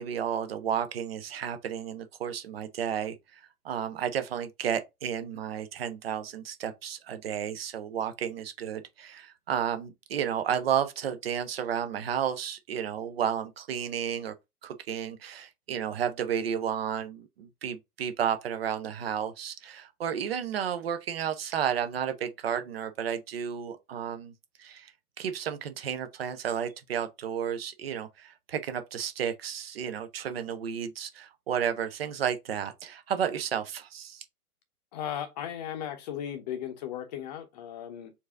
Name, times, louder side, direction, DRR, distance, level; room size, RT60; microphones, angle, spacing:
voice 1, 0.0-3.4 3.6-14.3 14.6-24.3 24.6-24.9 25.2-34.2, right 8 dB, 40° right, 0.7 m, -32 dB
voice 2, 34.9-38.1, left 10 dB, 25° left, 0.8 m, -36 dB
4.6 x 2.7 x 3.6 m
figure-of-eight pair, 115°, 47 cm